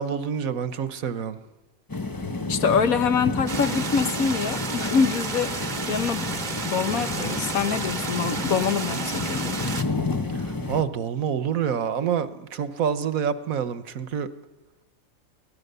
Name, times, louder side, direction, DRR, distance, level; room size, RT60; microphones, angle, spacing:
voice 1, 0.0-1.4 10.3-14.3, right 7 dB, 75° right, 1.4 m, -27 dB
sound 1, 1.9-10.8, left 3 dB, 15° left, 0.9 m, -30 dB
voice 2, 2.5-6.3 6.6-9.6, left 6 dB, 75° left, 1.6 m, -25 dB
sound 2, 3.5-9.8, right 4 dB, 35° right, 1.1 m, -32 dB
24.0 x 17.5 x 6.8 m
omnidirectional pair, 1.5 m